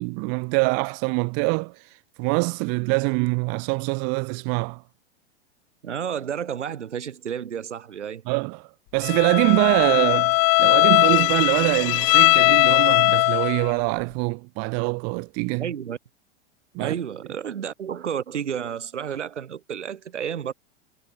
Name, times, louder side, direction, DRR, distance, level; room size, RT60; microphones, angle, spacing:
voice 1, 0.0-4.8 8.3-15.7 16.7-16.9, right 37 dB, 45° right, 1.0 m, -24 dB
voice 2, 5.8-8.2 15.6-16.0 16.8-20.5, right 8 dB, 90° right, 5.4 m, -31 dB
Bowed string instrument, 9.0-13.7, left 40 dB or more, 45° left, 1.4 m, -19 dB
hypercardioid pair, 120°, 34 cm